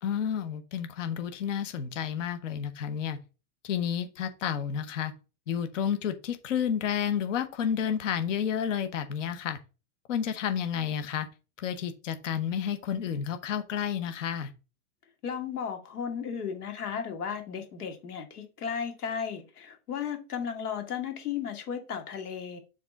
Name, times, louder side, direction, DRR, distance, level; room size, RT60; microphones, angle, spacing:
voice 1, 0.0-3.2 3.6-5.1 5.5-9.6 10.1-11.3 11.6-14.5, left 8 dB, 55° left, 10 dB, 1.0 m, -30 dB
voice 2, 15.2-22.6, left 7 dB, 85° left, 5 dB, 2.2 m, -35 dB
6.9 x 3.7 x 5.1 m, 0.32 s
supercardioid pair, 170°, 45 cm